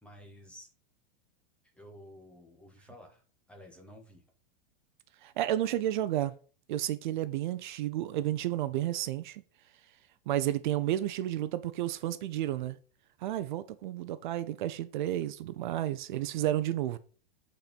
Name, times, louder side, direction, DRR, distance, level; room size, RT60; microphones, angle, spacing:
voice 1, 0.0-0.7 1.6-4.2, equal, 5° left, 0.9 m, -52 dB
voice 2, 5.2-6.3 6.7-9.4 10.3-12.8 13.2-17.0, right 13 dB, 55° right, 0.6 m, -31 dB
8.4 x 4.4 x 5.1 m
supercardioid pair, 175°, 29 cm